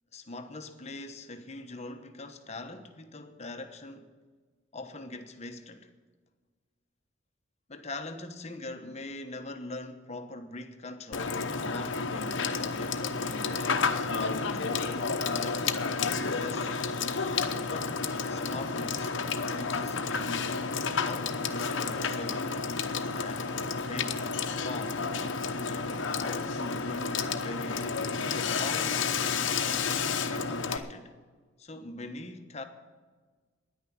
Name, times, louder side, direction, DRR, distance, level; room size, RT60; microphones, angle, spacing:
voice 1, 0.1-4.2 4.7-5.9 7.7-16.9 17.7-19.1 19.4-20.5 21.0-22.6 23.1-25.0 25.7-27.9 28.3-29.5 29.9-31.1 31.6-32.6, left 2 dB, 35° left, 1.0 m, -42 dB
Water / Water tap faucet / Sink (filling or washing), 11.1-30.8, left 5 dB, 70° left, 0.9 m, -31 dB
10.5 x 9.7 x 9.9 m
head